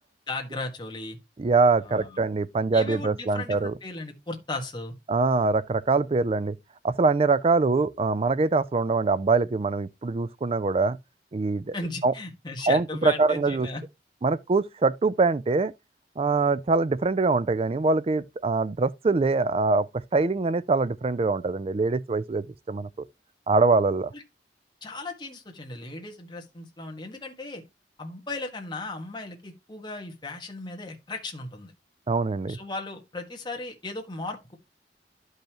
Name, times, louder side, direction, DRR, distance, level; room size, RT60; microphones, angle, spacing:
voice 1, 0.3-1.2 1.8-2.2 2.7-4.9 11.7-13.8 24.1-24.2 24.8-27.6 28.0-31.7 32.5-34.6, left 2 dB, 25° left, 1.5 m, -36 dB
voice 2, 1.4-3.7 5.1-6.6 6.8-11.0 11.3-11.7 12.0-12.1 12.7-13.7 14.2-15.7 16.2-19.9 20.1-22.9 23.5-24.1 32.1-32.6, right 3 dB, 35° right, 0.4 m, -23 dB
11.5 x 5.4 x 2.9 m
head